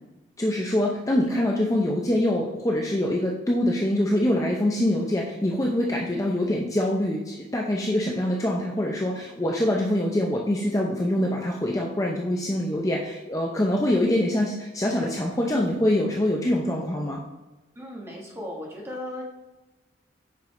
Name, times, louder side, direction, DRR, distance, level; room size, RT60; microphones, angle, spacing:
voice 1, 0.4-17.2, left 1 dB, 15° left, -1 dB, 0.5 m, -24 dB
voice 2, 17.7-19.2, left 1 dB, 15° right, -2 dB, 1.3 m, -36 dB
7.6 x 5.3 x 3.2 m, 1.1 s
head